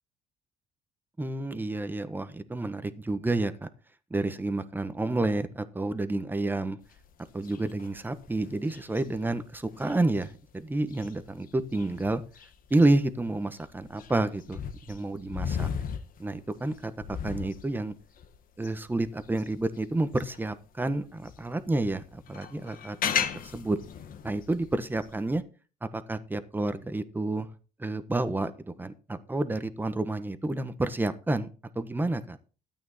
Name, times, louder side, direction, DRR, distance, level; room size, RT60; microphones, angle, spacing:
voice 1, 1.2-3.7 4.1-6.8 7.3-12.2 12.7-14.6 14.9-15.7 16.2-17.9 18.6-23.1 23.4-23.8 24.2-25.4 25.8-27.5 27.8-28.5 28.8-31.5 31.7-32.4, right 2 dB, 10° right, 11 dB, 1.2 m, -29 dB
sound 1, 6.8-20.5 20.9-25.4, left 7 dB, 55° left, 1.3 m, -37 dB
13.0 x 8.9 x 4.2 m, 0.35 s
cardioid pair, 110°, 17 cm